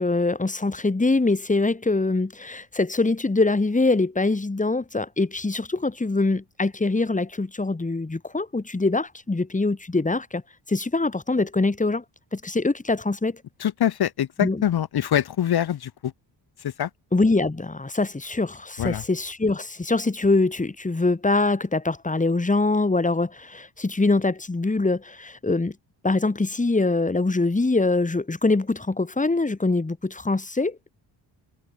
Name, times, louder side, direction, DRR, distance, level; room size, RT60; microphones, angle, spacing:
voice 1, 0.0-10.4 10.7-12.0 12.3-13.4 14.4-14.6 17.1-25.7 26.0-30.9, left 3 dB, 15° left, 3.0 m, -23 dB
voice 2, 13.6-16.1 16.6-16.9 18.8-19.0, left 10 dB, 55° left, 1.6 m, -24 dB
cardioid pair, 75°, 44 cm